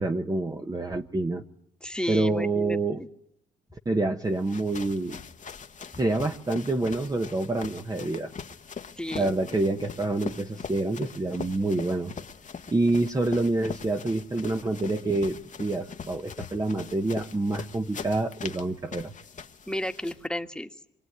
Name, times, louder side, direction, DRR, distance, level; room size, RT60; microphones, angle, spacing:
voice 1, 0.0-1.4 2.1-3.0 3.8-5.2 6.0-8.3 9.1-12.1 12.7-19.1, right 2 dB, 20° right, 5 dB, 1.2 m, -27 dB
voice 2, 1.8-3.1 9.0-9.3 19.7-20.7, left 1 dB, 5° left, 7 dB, 1.7 m, -32 dB
sound 1, 4.3-20.3, left 6 dB, 40° left, 1.4 m, -42 dB
25.5 x 22.5 x 9.6 m, 0.72 s
cardioid pair, 90°, 20 cm